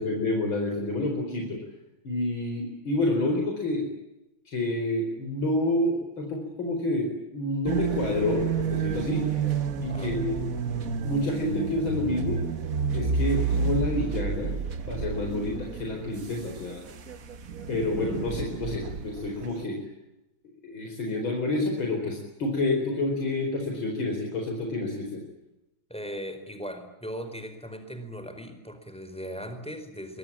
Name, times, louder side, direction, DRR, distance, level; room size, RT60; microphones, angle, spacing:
voice 1, 0.0-1.6 2.0-3.9 4.5-9.2 9.8-10.4 11.0-12.4 12.9-14.5 14.9-16.8 17.7-19.9 20.6-25.2, left 2 dB, 80° left, 2 dB, 5.3 m, -28 dB
sound 1, 7.7-19.5, right 6 dB, 50° right, 1.6 m, -30 dB
voice 2, 25.9-30.2, equal, 5° left, 8 dB, 4.6 m, -38 dB
24.5 x 22.5 x 8.7 m, 0.90 s
omnidirectional pair, 2.2 m